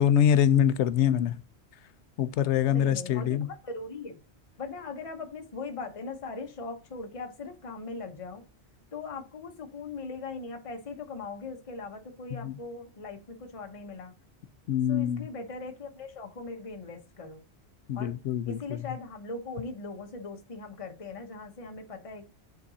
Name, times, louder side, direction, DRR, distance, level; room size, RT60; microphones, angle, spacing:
voice 1, 0.0-1.4 2.2-3.5 12.3-12.6 14.7-15.3 17.9-18.8, left 9 dB, 85° left, 0.9 m, -24 dB
voice 2, 2.7-4.2 4.6-8.4 8.9-14.1 14.9-17.4 17.9-18.1 18.4-22.2, left 3 dB, 30° left, 1.0 m, -40 dB
9.6 x 4.0 x 2.7 m
omnidirectional pair, 1.1 m